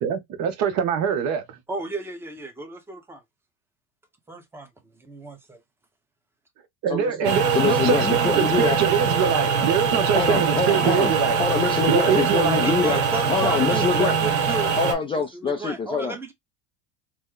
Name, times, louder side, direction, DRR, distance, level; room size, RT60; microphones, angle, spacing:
voice 1, 0.0-1.6 6.8-11.4 11.9-12.6, right 8 dB, 50° right, 1.0 m, -24 dB
voice 2, 1.7-3.2 4.3-4.7 5.0-5.6 12.6-14.8 15.3-16.3, right 2 dB, 5° right, 0.8 m, -33 dB
voice 3, 6.9-8.8 10.1-11.1 11.4-13.0 13.3-14.2 14.8-16.2, left 5 dB, 15° left, 0.4 m, -25 dB
sound 1, 7.2-14.9, right 6 dB, 85° right, 1.0 m, -23 dB
3.1 x 2.1 x 3.7 m
supercardioid pair, 130°, 34 cm